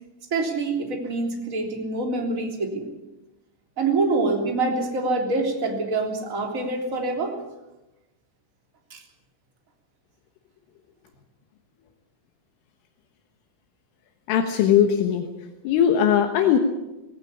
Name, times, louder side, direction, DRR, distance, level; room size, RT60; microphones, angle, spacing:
voice 1, 0.3-2.9 3.8-7.4 8.9-9.0, right 3 dB, 20° right, 2 dB, 2.8 m, -25 dB
voice 2, 14.3-15.3 15.7-16.6, left 9 dB, 80° left, 5 dB, 3.8 m, -19 dB
19.0 x 17.5 x 8.5 m, 1.0 s
omnidirectional pair, 5.7 m